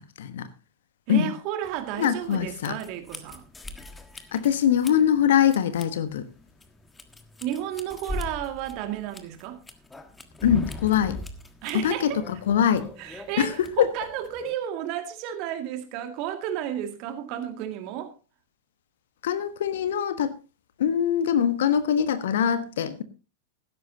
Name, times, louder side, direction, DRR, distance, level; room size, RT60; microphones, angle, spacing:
voice 1, 1.1-3.5 7.4-9.6 11.6-12.4 13.0-18.1, right 11 dB, 45° right, 2.2 m, -32 dB
sound 1, 1.6-14.5, left 2 dB, 10° left, 1.4 m, -41 dB
voice 2, 2.0-2.7 4.3-6.2 10.4-11.2 11.7-12.1 12.5-12.9 13.4-13.5 19.2-20.3 20.8-23.0, left 9 dB, 60° left, 1.2 m, -23 dB
16.0 x 13.0 x 2.8 m
figure-of-eight pair, 90°, 0 cm